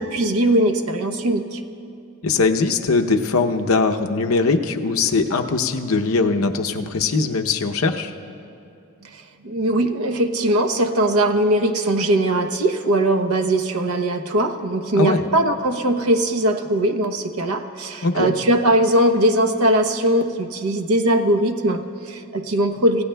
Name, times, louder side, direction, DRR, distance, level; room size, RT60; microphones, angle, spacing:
voice 1, 0.0-1.6 9.1-23.0, right 1 dB, 85° right, 7 dB, 0.8 m, -20 dB
voice 2, 2.2-8.1 14.9-15.2 18.0-18.3, left 4 dB, 75° left, 5 dB, 0.7 m, -20 dB
27.0 x 16.5 x 2.3 m, 2.6 s
head